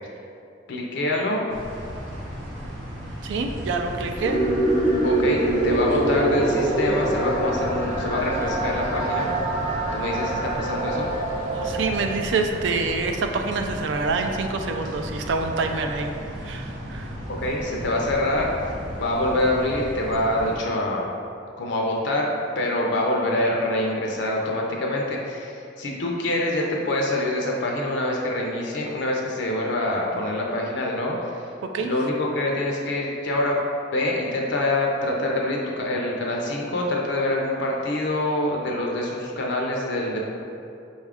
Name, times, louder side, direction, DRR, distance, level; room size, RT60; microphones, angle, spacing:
voice 1, 0.7-1.5 5.0-9.3 9.9-11.1 17.4-21.1 21.6-22.3 22.6-31.4 31.8-33.6 33.9-40.3, left 1 dB, 65° left, -1 dB, 0.5 m, -25 dB
sound 1, 1.5-20.6, equal, 85° right, 0.8 m, -35 dB
voice 2, 3.2-4.4 11.5-16.1 16.4-17.1 31.7-31.9, right 4 dB, 70° right, 4 dB, 0.4 m, -26 dB
sound 2, 4.2-11.9, right 1 dB, 30° right, 0.7 m, -24 dB
5.2 x 2.4 x 3.4 m, 2.6 s
head